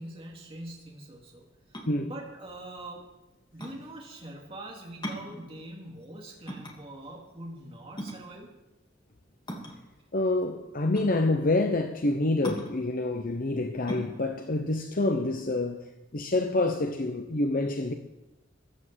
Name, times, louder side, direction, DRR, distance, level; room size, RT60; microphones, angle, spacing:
voice 1, 0.0-1.4 2.1-3.1 3.5-8.5, right 1 dB, 30° right, 2.4 m, -43 dB
sound 1, 1.6-15.9, equal, 25° left, 2.6 m, -41 dB
voice 2, 10.1-17.9, left 2 dB, 45° left, 0.9 m, -27 dB
14.5 x 10.5 x 7.6 m
head